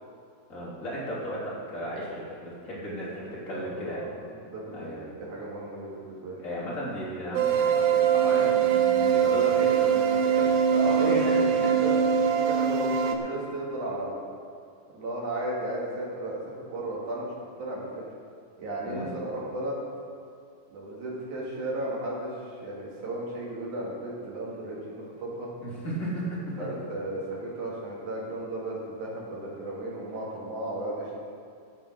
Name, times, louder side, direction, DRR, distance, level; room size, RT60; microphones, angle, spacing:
voice 1, 0.5-4.0 4.7-5.1 6.4-10.5 10.9-11.7 18.8-19.1 25.6-26.5, equal, 20° left, -7 dB, 2.9 m, -35 dB
voice 2, 3.5-6.4 10.7-14.2 14.9-17.3 17.6-17.9 18.6-19.8 20.7-25.5 26.6-31.2, right 1 dB, 50° right, -5 dB, 3.6 m, -34 dB
sound 1, 7.3-13.2, right 7 dB, 85° right, 1.8 m, -23 dB
13.5 x 7.1 x 6.9 m, 2.3 s
omnidirectional pair, 4.7 m